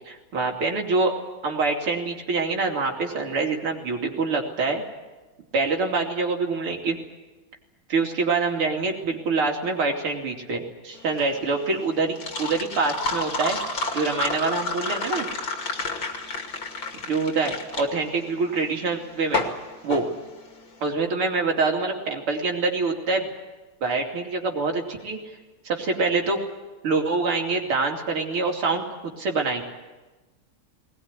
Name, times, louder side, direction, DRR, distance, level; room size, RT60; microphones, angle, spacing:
voice 1, 0.1-1.1 1.4-4.8 5.5-7.0 7.9-13.6 13.9-15.3 17.1-19.5 19.8-20.1 20.8-23.3 23.8-25.2 25.7-26.4 26.8-28.8 29.2-29.6, right 3 dB, 90° right, 2 dB, 3.7 m, -25 dB
sound 1, 11.0-20.8, left 3 dB, 65° left, 3.2 m, -31 dB
20.0 x 20.0 x 9.7 m, 1.1 s
omnidirectional pair, 2.3 m